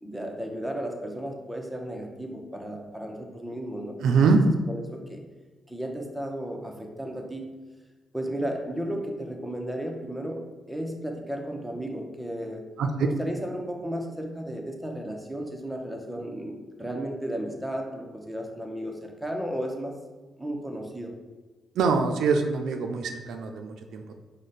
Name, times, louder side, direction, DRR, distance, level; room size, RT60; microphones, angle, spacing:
voice 1, 0.0-4.0 4.7-5.2 5.7-7.5 8.1-12.7 13.0-19.9 20.4-21.1, right 1 dB, ahead, 1 dB, 0.8 m, -34 dB
voice 2, 4.0-4.4 12.8-12.9 21.8-24.2, right 4 dB, 80° right, 5 dB, 0.4 m, -24 dB
4.8 x 2.2 x 4.1 m, 1.3 s
cardioid pair, 70°, 0 cm